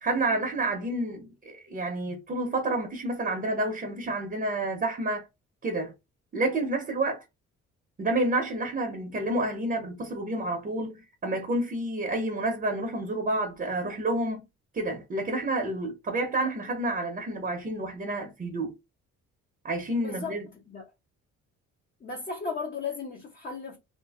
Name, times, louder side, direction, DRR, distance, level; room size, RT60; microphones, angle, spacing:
voice 1, 0.0-5.3 5.6-5.9 6.3-7.2 8.0-14.4 14.7-18.7 19.6-20.5, right 2 dB, 30° right, 0.7 m, -29 dB
voice 2, 20.0-20.3 20.7-20.8 22.0-23.8, left 5 dB, 30° left, 0.6 m, -35 dB
2.7 x 2.6 x 2.3 m
cardioid pair, 90°, 30 cm